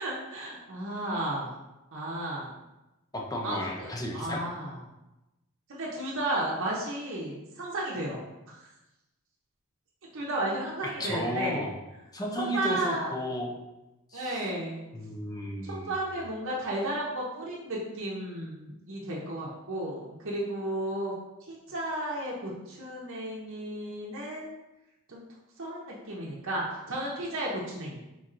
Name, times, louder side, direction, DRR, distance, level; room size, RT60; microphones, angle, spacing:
voice 1, 0.0-1.6 1.9-2.5 3.4-4.8 5.7-8.7 10.1-11.7 12.4-13.1 14.1-14.8 15.6-21.1 21.5-24.5 25.1-25.2 25.6-28.0, right 1 dB, 60° right, -4 dB, 0.7 m, -33 dB
voice 2, 3.1-4.4 11.0-11.7 12.1-13.6 14.1-14.4 14.9-15.9, left 1 dB, 15° left, -1 dB, 0.6 m, -33 dB
4.4 x 4.2 x 2.5 m, 0.98 s
head